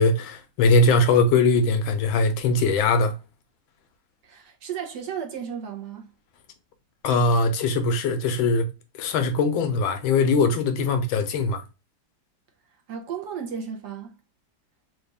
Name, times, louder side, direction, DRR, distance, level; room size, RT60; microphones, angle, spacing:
voice 1, 0.0-3.2 7.0-8.7 9.0-11.6, left 3 dB, 85° left, 1.5 m, -21 dB
voice 2, 4.2-6.1 12.9-14.1, right 7 dB, 65° right, 1.2 m, -34 dB
4.1 x 2.4 x 3.3 m
omnidirectional pair, 2.1 m